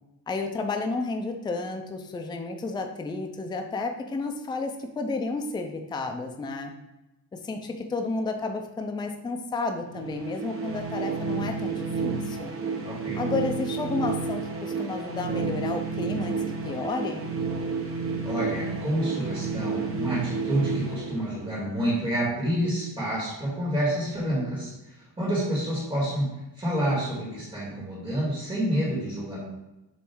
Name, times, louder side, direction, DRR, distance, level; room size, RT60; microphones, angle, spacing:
voice 1, 0.3-6.7 7.3-12.6 13.2-17.3, left 3 dB, 10° left, 4 dB, 0.4 m, -31 dB
sound 1, 9.9-21.8, right 4 dB, 30° right, 0.8 m, -31 dB
voice 2, 12.8-13.2 18.2-26.3 26.6-29.4, right 1 dB, 15° right, -7 dB, 2.1 m, -28 dB
7.0 x 3.1 x 4.5 m, 0.98 s
cardioid pair, 170°, 42 cm